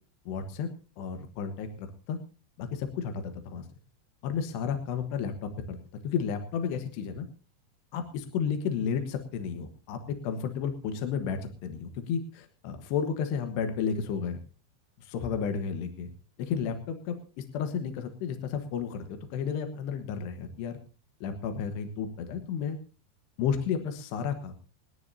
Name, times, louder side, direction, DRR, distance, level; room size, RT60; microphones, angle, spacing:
voice 1, 0.3-0.7 1.0-2.2 2.6-3.7 4.2-5.8 6.0-7.3 7.9-14.4 15.0-16.1 16.4-20.8 21.2-22.8 23.4-24.5, left 7 dB, 70° left, 6 dB, 3.2 m, -32 dB
27.5 x 10.5 x 2.7 m, 0.34 s
omnidirectional pair, 5.2 m